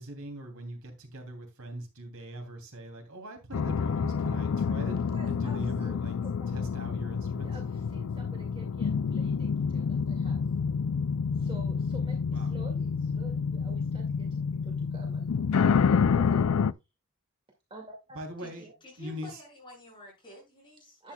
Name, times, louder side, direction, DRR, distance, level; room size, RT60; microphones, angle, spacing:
voice 1, 0.0-5.0 5.3-6.1 6.5-7.5 12.3-12.5 18.1-18.6 19.0-19.3, right 1 dB, 70° right, 2.8 m, -41 dB
sound 1, 3.5-16.7, left 6 dB, 70° left, 0.4 m, -28 dB
voice 2, 4.9-6.6 7.4-10.5 11.3-16.4 17.7-18.2 18.6-18.7 21.0-21.1, right 1 dB, 25° right, 2.0 m, -49 dB
voice 3, 18.4-21.1, left 1 dB, 25° left, 6.8 m, -50 dB
11.0 x 8.8 x 2.2 m
head